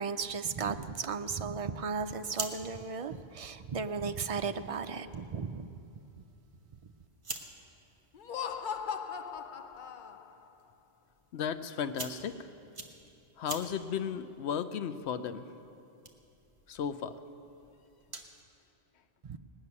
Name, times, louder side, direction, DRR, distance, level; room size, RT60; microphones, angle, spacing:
voice 1, 0.0-5.7 19.2-19.4, right 5 dB, 50° right, 9 dB, 0.4 m, -35 dB
sound 1, 2.0-18.4, right 2 dB, 30° right, 1.1 m, -49 dB
Laughter, 8.1-10.5, left 7 dB, 55° left, 0.7 m, -38 dB
voice 2, 11.3-12.4 13.4-15.5 16.7-17.2, left 7 dB, 80° left, 11 dB, 0.9 m, -35 dB
18.5 x 6.5 x 9.5 m, 2.7 s
omnidirectional pair, 1.1 m